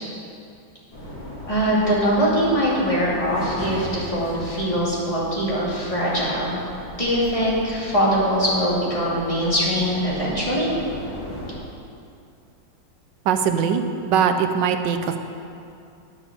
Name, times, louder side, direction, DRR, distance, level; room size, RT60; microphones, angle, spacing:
sound 1, 0.9-11.5, equal, 75° left, 4.0 m, -37 dB
voice 1, 1.5-6.6 7.0-10.7, equal, 15° left, -7 dB, 2.4 m, -22 dB
voice 2, 13.2-15.2, right 7 dB, 70° right, 7 dB, 1.3 m, -21 dB
9.8 x 7.0 x 6.9 m, 2.5 s
omnidirectional pair, 2.1 m